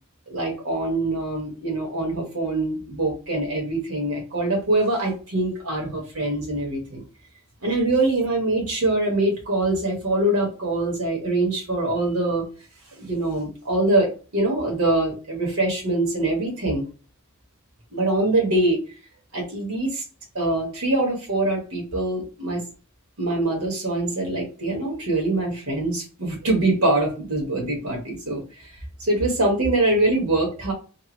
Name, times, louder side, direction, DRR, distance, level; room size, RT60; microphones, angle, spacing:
voice 1, 0.3-7.0 7.6-12.4 13.0-16.8 17.9-18.8 19.3-20.0 20.3-22.6 23.2-28.4 29.0-30.7, right 2 dB, 85° right, -1 dB, 1.5 m, -24 dB
3.5 x 2.1 x 3.0 m, 0.34 s
head